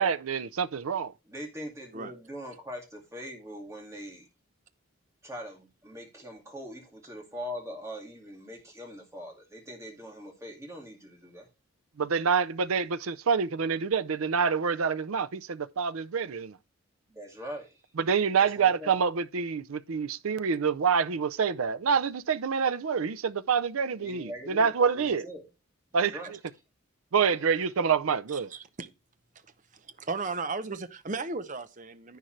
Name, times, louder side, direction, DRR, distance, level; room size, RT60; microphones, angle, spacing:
voice 1, 0.0-1.1 12.0-16.6 18.0-25.3 25.9-26.1 27.1-28.5, right 6 dB, 80° right, 0.5 m, -27 dB
voice 2, 1.3-4.3 5.2-11.5 17.1-17.8 18.4-19.0 23.9-25.5 25.9-26.3, equal, 15° right, 2.2 m, -42 dB
voice 3, 28.3-28.9 29.7-32.2, right 3 dB, 35° right, 0.7 m, -35 dB
10.5 x 9.0 x 3.2 m
head